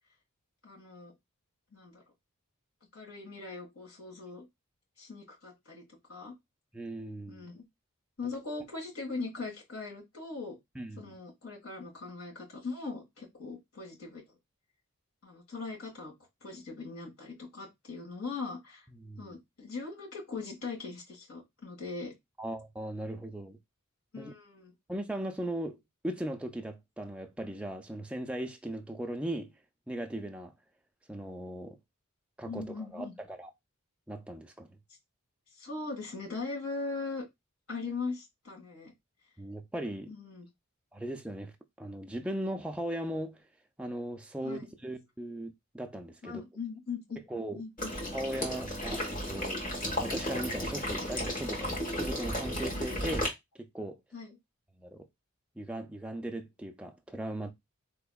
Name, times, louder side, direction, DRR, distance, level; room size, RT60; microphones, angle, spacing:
voice 1, 0.6-1.1 1.7-2.0 2.9-4.5 5.0-5.8 6.1-6.3 7.3-7.6 8.2-10.6 11.0-14.2 15.2-16.1 16.4-18.9 19.2-22.1 24.1-24.7 32.4-33.1 35.6-37.3 37.7-38.9 40.1-40.5 44.4-44.7 46.2-47.2 47.5-48.0 52.7-52.9 54.1-54.4, left 4 dB, 75° left, 1.7 m, -40 dB
voice 2, 6.7-7.4 10.8-11.1 18.9-19.4 22.4-23.6 24.2-24.3 24.9-25.8 26.0-29.5 29.9-30.5 31.1-31.8 32.4-33.5 34.1-34.8 39.4-40.1 40.9-43.4 43.8-46.4 47.3-47.6 48.1-53.3 53.6-54.0 54.8-55.0 55.6-57.5, right 1 dB, 5° right, 0.3 m, -38 dB
Water / Liquid, 47.8-53.3, equal, 40° left, 1.3 m, -34 dB
4.1 x 2.8 x 2.3 m
head